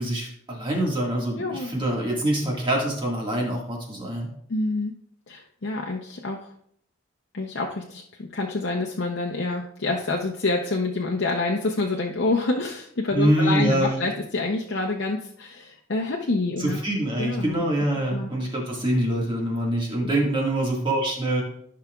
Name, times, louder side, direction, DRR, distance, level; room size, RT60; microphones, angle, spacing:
voice 1, 0.0-4.3 13.1-14.1 16.6-21.4, right 1 dB, 25° right, -2 dB, 1.8 m, -25 dB
voice 2, 1.4-1.7 4.5-4.9 5.3-6.5 7.3-16.8 17.2-17.6 18.1-18.3 20.0-20.1, left 3 dB, 65° left, 0 dB, 0.7 m, -27 dB
14.0 x 5.7 x 2.4 m, 0.68 s
head